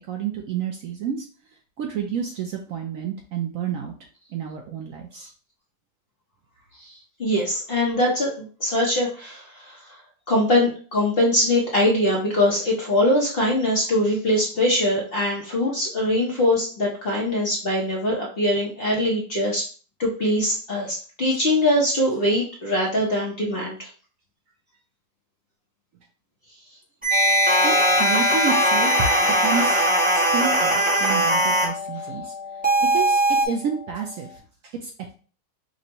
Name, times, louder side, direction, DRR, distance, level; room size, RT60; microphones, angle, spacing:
voice 1, 0.1-1.3 1.8-3.9 4.3-5.3 21.3-21.4 27.4-29.0 29.4-29.8 30.1-32.3 32.8-34.3 34.6-34.9, right 7 dB, 70° right, 1 dB, 0.8 m, -30 dB
voice 2, 7.2-9.8 10.3-19.6 20.0-23.9, left 1 dB, 45° left, -3 dB, 0.9 m, -22 dB
sound 1, 27.0-31.7 32.6-33.5, right 2 dB, 10° right, 0.6 m, -20 dB
sound 2, 27.1-34.2, left 6 dB, 80° left, 1.3 m, -27 dB
5.2 x 2.1 x 2.8 m, 0.39 s
omnidirectional pair, 1.7 m